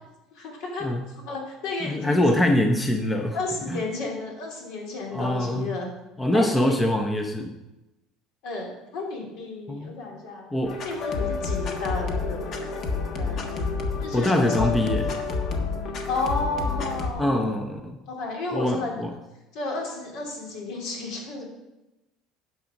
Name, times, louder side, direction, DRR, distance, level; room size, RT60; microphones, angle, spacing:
voice 1, 0.3-0.9 1.2-2.2 3.3-5.9 6.3-6.7 8.4-10.5 10.8-12.6 13.1-13.7 14.0-14.7 16.1-17.5 18.1-19.0 19.5-21.5, left 3 dB, 70° left, 0 dB, 3.2 m, -32 dB
voice 2, 1.8-3.4 3.7-3.8 5.1-5.7 6.2-7.6 9.7-9.9 10.5-10.8 14.1-15.1 17.2-18.0 18.5-19.1, left 1 dB, 10° left, 4 dB, 0.8 m, -24 dB
sound 1, 10.6-17.1, left 4 dB, 45° left, 1.4 m, -29 dB
9.9 x 6.1 x 6.5 m, 0.99 s
cardioid pair, 135°, 0 cm